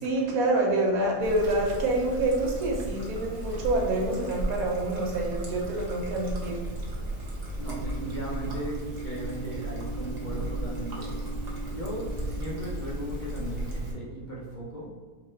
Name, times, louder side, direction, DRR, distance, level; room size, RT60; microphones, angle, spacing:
voice 1, 0.0-6.7, right 2 dB, 70° right, -1 dB, 1.2 m, -27 dB
Trickle dribble, 1.2-13.9, right 1 dB, 40° right, 0.6 m, -35 dB
sound 1, 7.6-12.7, right 5 dB, 85° left, 1.4 m, -40 dB
voice 2, 7.6-11.4 11.6-14.9, equal, 60° left, -6 dB, 0.5 m, -37 dB
4.4 x 2.3 x 3.1 m, 1.5 s
omnidirectional pair, 1.7 m